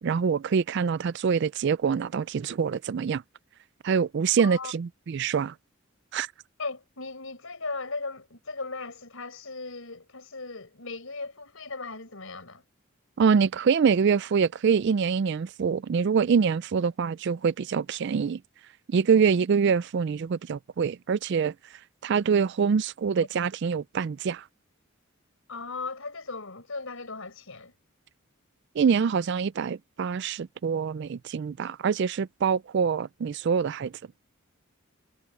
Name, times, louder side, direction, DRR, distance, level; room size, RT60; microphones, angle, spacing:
voice 1, 0.0-3.2 3.8-5.5 6.1-6.3 13.2-18.4 18.9-21.5 22.0-24.4 28.8-33.9, right 6 dB, 55° right, 0.3 m, -25 dB
voice 2, 4.4-4.7 6.6-12.6 25.5-27.7, left 3 dB, 70° left, 5.0 m, -37 dB
head